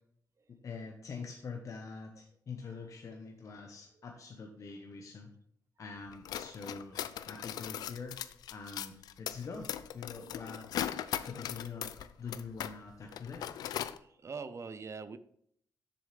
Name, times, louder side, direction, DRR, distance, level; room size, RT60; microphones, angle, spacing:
voice 1, 0.6-5.3 5.8-7.0 7.3-8.2 8.5-10.8 11.2-11.9 12.2-13.5, left 5 dB, 55° left, 3 dB, 0.9 m, -44 dB
sound 1, 6.1-12.8 13.0-14.0, left 10 dB, 85° left, 0.4 m, -39 dB
voice 2, 14.0-15.2, right 5 dB, 45° right, 13 dB, 0.5 m, -42 dB
7.0 x 7.0 x 3.3 m, 0.67 s
cardioid pair, 85°, 7 cm